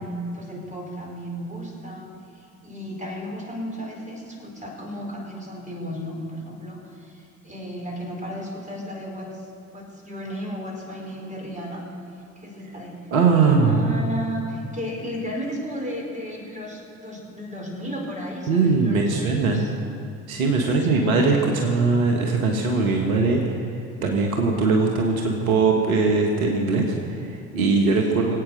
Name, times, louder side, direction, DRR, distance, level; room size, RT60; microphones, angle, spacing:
voice 1, 0.0-2.1 2.3-9.5 9.7-11.8 12.4-12.9 13.3-19.7 20.6-21.5 28.1-28.4, equal, 15° right, 0 dB, 4.7 m, -34 dB
voice 2, 13.1-13.8 18.5-19.6 20.3-23.6 24.0-28.4, right 4 dB, 70° right, 2 dB, 1.6 m, -21 dB
23.5 x 8.8 x 6.4 m, 2.7 s
figure-of-eight pair, 60°, 44 cm